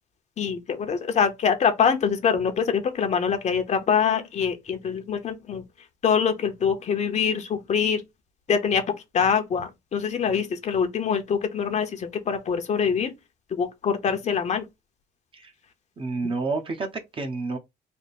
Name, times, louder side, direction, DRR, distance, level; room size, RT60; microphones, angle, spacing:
voice 1, 0.4-5.6 6.0-8.0 8.5-8.8 9.1-13.1 13.5-14.6, left 6 dB, 40° left, 0.8 m, -24 dB
voice 2, 16.0-17.6, right 3 dB, 30° right, 0.9 m, -29 dB
3.4 x 2.2 x 4.2 m
cardioid pair, 110°, 17 cm